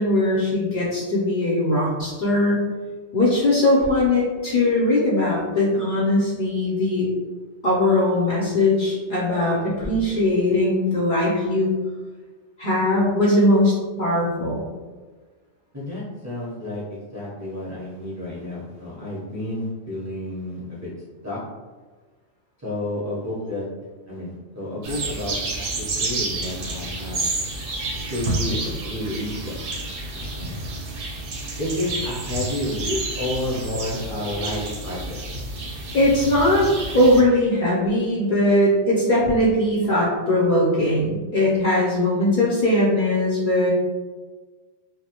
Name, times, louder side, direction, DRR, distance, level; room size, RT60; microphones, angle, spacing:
voice 1, 0.0-2.7 3.1-7.1 7.6-11.7 12.6-14.6 35.9-36.7 36.9-43.7, left 1 dB, 55° left, -6 dB, 0.6 m, -20 dB
voice 2, 15.7-16.8 17.1-20.9 21.2-21.4 22.6-23.6 24.1-27.2 28.1-29.6 30.1-30.6 31.6-35.2, left 1 dB, 20° right, -9 dB, 0.5 m, -30 dB
sound 1, 24.8-37.2, right 2 dB, 60° right, 0.7 m, -30 dB
2.4 x 2.1 x 2.8 m, 1.3 s
omnidirectional pair, 1.2 m